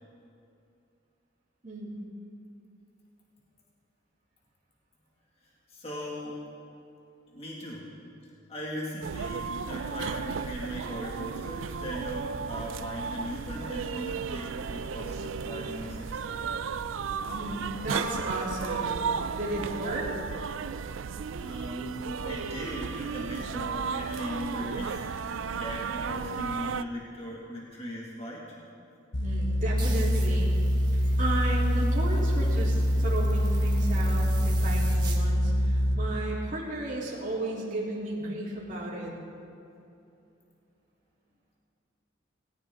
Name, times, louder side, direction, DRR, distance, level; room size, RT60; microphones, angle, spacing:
voice 1, 1.6-2.0 17.3-20.1 29.2-30.5 31.2-39.1, right 1 dB, 40° right, -6 dB, 3.1 m, -34 dB
voice 2, 5.7-6.4 7.3-7.9 8.5-16.5 21.4-25.1 25.5-28.6 31.0-31.2, equal, 30° left, -4 dB, 2.1 m, -38 dB
sound 1, 9.0-26.8, right 6 dB, 85° right, 0.4 m, -34 dB
sound 2, 29.1-36.0, equal, 70° left, 1.0 m, -25 dB
sound 3, 29.8-35.2, right 3 dB, 25° right, 1.6 m, -44 dB
18.0 x 17.5 x 3.8 m, 2.7 s
head